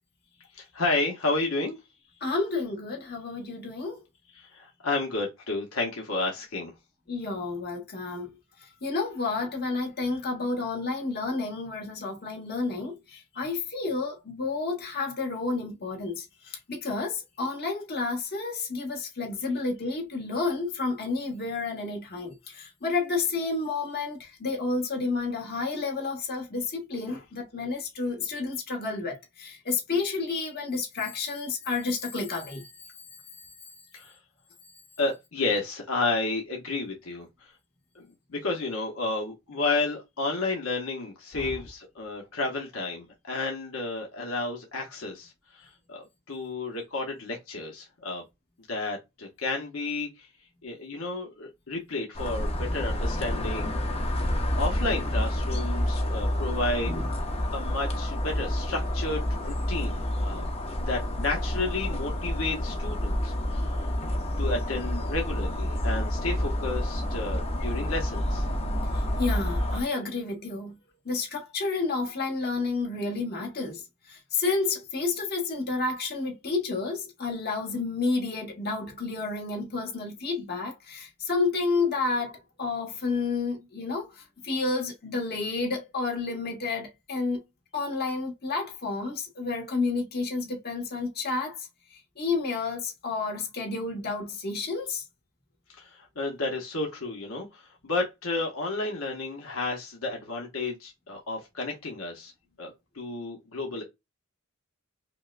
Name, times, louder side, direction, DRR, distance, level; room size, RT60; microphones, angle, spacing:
voice 1, 0.5-1.8 4.4-6.7 33.9-34.2 35.0-37.5 37.9-48.2 48.7-50.3 50.6-53.8 54.1-56.9 57.5-60.5 60.8-68.4 95.8-102.3 102.6-103.8, left 3 dB, 80° left, 0.9 m, -32 dB
voice 2, 2.2-4.0 7.1-8.3 8.6-32.9 33.4-33.5 41.3-41.6 56.8-57.1 68.9-70.7 71.0-73.8 74.1-87.4 87.7-95.0, left 3 dB, 50° left, 1.3 m, -30 dB
sound 1, 52.1-69.8, left 1 dB, 30° left, 0.6 m, -29 dB
5.1 x 2.1 x 2.5 m
head